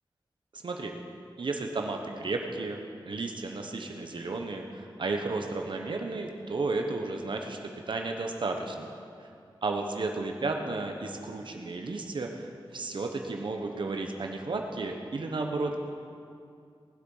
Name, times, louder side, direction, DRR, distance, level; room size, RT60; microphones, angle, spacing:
voice 1, 0.5-0.9 1.4-2.8 3.1-7.6 7.9-8.9 9.6-15.9, right 3 dB, 65° right, 3 dB, 1.1 m, -33 dB
19.0 x 8.1 x 5.6 m, 2.4 s
wide cardioid pair, 115°, 9 cm